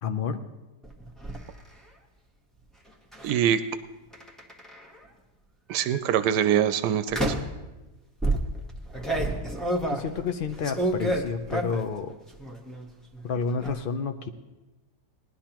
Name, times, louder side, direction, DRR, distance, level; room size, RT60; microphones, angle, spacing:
voice 1, 0.0-0.4 9.1-9.3 9.8-12.1 13.2-14.3, left 5 dB, 75° left, 6 dB, 0.5 m, -30 dB
sound 1, 0.8-1.4 3.1-3.4 4.1-5.0 5.7-6.0 7.1-7.6 8.2-12.0 12.3-12.9 13.1-13.7, right 1 dB, ahead, 0.8 m, -29 dB
voice 2, 3.2-3.6 5.7-7.4, right 9 dB, 90° right, 11 dB, 1.2 m, -24 dB
19.5 x 11.0 x 2.9 m, 1.1 s
omnidirectional pair, 1.7 m